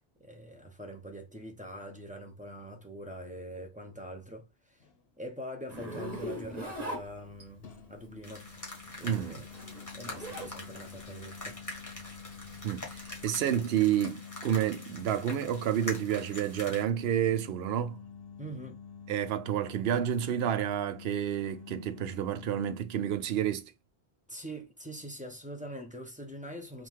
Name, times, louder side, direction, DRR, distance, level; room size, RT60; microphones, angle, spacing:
voice 1, 0.2-4.8 5.2-8.5 9.0-9.5 9.9-11.6 18.4-18.8 24.3-26.9, equal, 10° right, 0.8 m, -43 dB
sound 1, 4.8-5.0 7.6-22.8, left 6 dB, 70° left, 1.1 m, -48 dB
Zipper (clothing), 5.7-7.7 8.9-10.6 10.9-13.4, right 1 dB, 40° right, 1.8 m, -41 dB
sound 2, 8.2-16.8, left 2 dB, 20° left, 1.2 m, -44 dB
voice 2, 9.0-9.4 12.6-18.0 19.1-23.7, right 10 dB, 75° right, 0.8 m, -30 dB
3.8 x 2.5 x 4.5 m
omnidirectional pair, 1.0 m